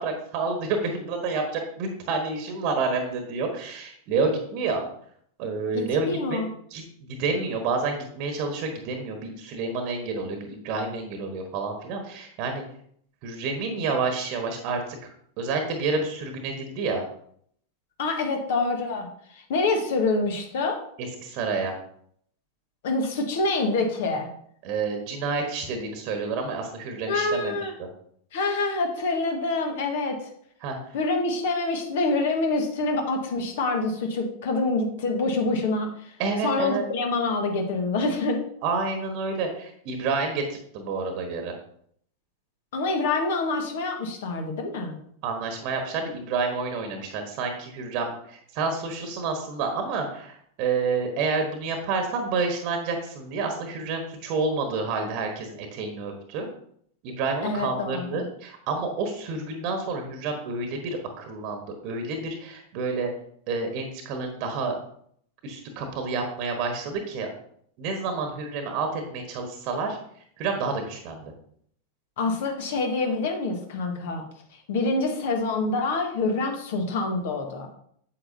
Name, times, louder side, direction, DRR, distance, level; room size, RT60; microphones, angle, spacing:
voice 1, 0.0-4.8 5.4-6.4 6.7-12.6 13.2-14.8 15.4-17.0 21.0-21.7 24.6-27.9 30.6-30.8 36.2-36.8 38.6-41.5 45.2-56.5 57.0-63.1 63.5-64.8 65.4-67.3 67.8-70.0 70.4-71.3, right 4 dB, 45° right, 4 dB, 1.3 m, -29 dB
voice 2, 5.7-6.5 18.0-19.1 19.3-20.8 22.8-24.3 27.1-27.7 28.3-30.2 30.9-35.9 36.4-38.4 42.7-45.0 57.4-58.2 72.2-74.2 74.7-77.7, left 3 dB, 55° left, 3 dB, 1.6 m, -26 dB
8.5 x 7.7 x 2.7 m, 0.65 s
figure-of-eight pair, 90°, 0 cm